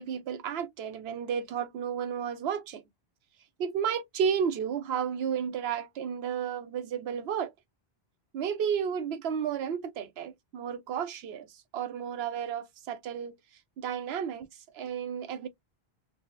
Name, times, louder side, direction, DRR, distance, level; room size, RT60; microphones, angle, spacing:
voice 1, 0.0-2.8 3.6-7.5 8.3-11.5 11.7-13.3 13.8-14.5 14.7-15.5, right 7 dB, 80° right, 0.8 m, -32 dB
2.6 x 2.0 x 3.7 m
omnidirectional pair, 1.1 m